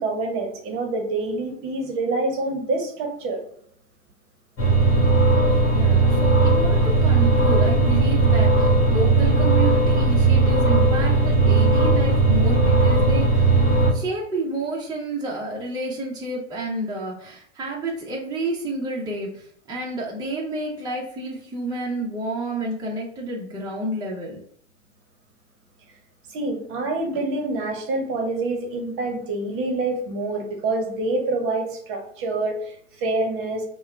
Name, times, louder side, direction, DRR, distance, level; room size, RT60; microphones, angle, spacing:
voice 1, 0.0-3.4 26.3-33.6, right 2 dB, 35° right, 3 dB, 1.0 m, -26 dB
sound 1, 4.6-13.9, right 3 dB, 35° left, 1.6 m, -17 dB
voice 2, 5.6-13.5 13.9-24.4, right 2 dB, 10° right, -4 dB, 0.8 m, -30 dB
3.5 x 2.3 x 4.4 m, 0.65 s
hypercardioid pair, 125°, 37 cm